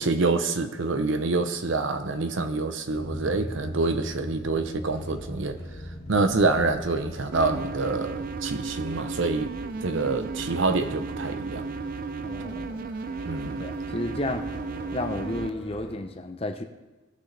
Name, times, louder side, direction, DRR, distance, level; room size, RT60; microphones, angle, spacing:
voice 1, 0.0-5.6 6.1-9.5 9.8-11.7 13.2-13.6, right 3 dB, 65° right, 8 dB, 0.8 m, -26 dB
sound 1, 2.9-16.0, equal, 50° left, 1.6 m, -42 dB
sound 2, 7.3-15.5, right 4 dB, 45° right, 0.4 m, -34 dB
voice 2, 12.2-12.8 13.6-14.4 14.9-16.6, left 2 dB, 30° left, 6 dB, 0.7 m, -32 dB
18.0 x 6.3 x 3.3 m, 1.1 s
head